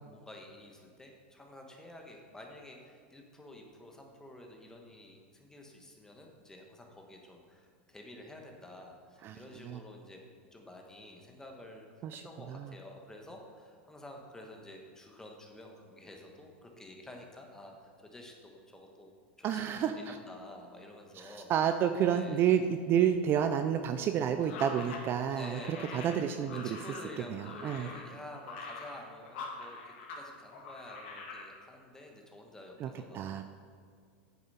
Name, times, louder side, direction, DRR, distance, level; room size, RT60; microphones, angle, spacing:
voice 1, 0.0-10.2 10.5-11.9 12.2-19.1 19.4-21.5 22.1-22.4 25.4-33.4, left 1 dB, 10° left, 1 dB, 1.3 m, -50 dB
voice 2, 9.2-9.8 12.0-12.7 19.4-20.2 21.1-26.8 27.2-27.9 32.8-33.4, right 9 dB, 35° right, 8 dB, 0.4 m, -30 dB
sound 1, 24.4-30.2 30.5-31.5, left 3 dB, 70° left, 1.7 m, -44 dB
8.7 x 7.0 x 4.2 m, 2.2 s
supercardioid pair, 120°, 6 cm